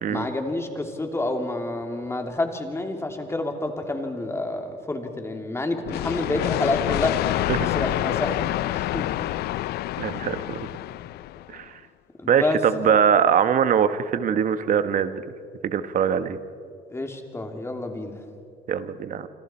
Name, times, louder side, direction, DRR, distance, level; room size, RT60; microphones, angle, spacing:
voice 1, 0.1-7.3 7.6-9.1 12.2-12.6 12.9-13.0 16.9-18.2, left 2 dB, 15° left, 4 dB, 2.8 m, -29 dB
sound 1, 5.9-11.6, left 16 dB, 70° left, 0.4 m, -27 dB
voice 2, 10.0-10.6 11.5-11.7 12.3-15.2 15.6-16.4 18.7-19.3, right 8 dB, 50° right, 11 dB, 1.2 m, -22 dB
28.0 x 26.0 x 4.4 m, 2.5 s
cardioid pair, 110°, 17 cm